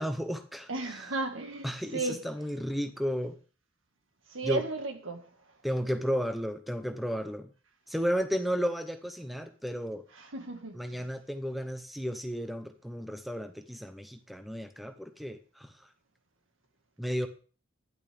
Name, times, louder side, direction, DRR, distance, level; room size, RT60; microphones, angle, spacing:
voice 1, 0.0-0.7 1.6-3.4 4.4-4.6 5.6-7.5 7.9-10.0 10.7-15.7 17.0-17.3, equal, ahead, 0.7 m, -33 dB
voice 2, 0.7-2.2 4.3-5.3 10.1-11.1, right 3 dB, 80° right, 1.8 m, -34 dB
12.5 x 11.0 x 3.5 m
head